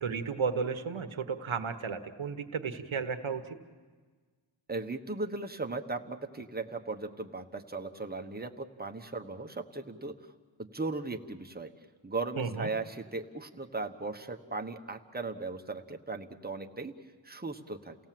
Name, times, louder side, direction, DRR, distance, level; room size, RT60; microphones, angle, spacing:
voice 1, 0.0-3.6 12.4-12.7, right 5 dB, 85° right, 9 dB, 1.2 m, -33 dB
voice 2, 4.7-10.1 10.6-11.7 12.0-16.9 17.2-17.9, right 3 dB, 20° right, 4 dB, 1.2 m, -37 dB
29.5 x 17.5 x 7.6 m, 1.5 s
wide cardioid pair, 90°, 47 cm